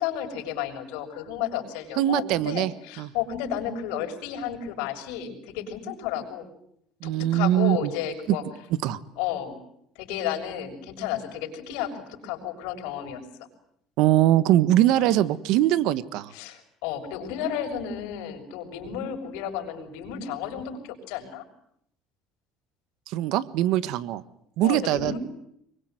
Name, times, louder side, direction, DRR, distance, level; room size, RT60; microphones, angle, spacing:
voice 1, 0.0-6.5 7.0-8.4 9.2-9.6 9.9-13.2 15.0-15.2 16.3-21.4 24.6-25.2, left 9 dB, 90° left, 5 dB, 6.5 m, -32 dB
voice 2, 2.0-2.7 3.0-3.1 7.0-7.9 8.3-8.4 8.8-9.0 14.0-16.3 23.1-24.2 24.6-25.2, right 13 dB, 65° right, 16 dB, 1.5 m, -22 dB
25.5 x 23.0 x 9.4 m, 0.71 s
cardioid pair, 155°, 0 cm